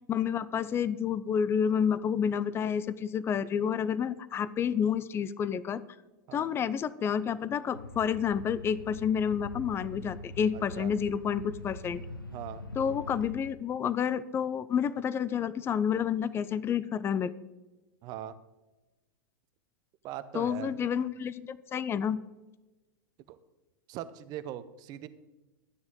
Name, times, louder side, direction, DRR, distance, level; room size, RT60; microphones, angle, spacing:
voice 1, 0.1-5.8 6.3-12.0 12.8-17.3 20.3-22.2, left 7 dB, 20° left, 17 dB, 0.5 m, -29 dB
sound 1, 7.7-13.3, left 2 dB, 90° left, 1.2 m, -43 dB
voice 2, 10.5-10.9 12.3-12.6 18.0-18.3 20.0-20.7 23.3-23.4 23.9-25.1, right 12 dB, 40° right, 14 dB, 0.8 m, -40 dB
12.5 x 9.5 x 3.8 m, 1.1 s
figure-of-eight pair, 95°, 11 cm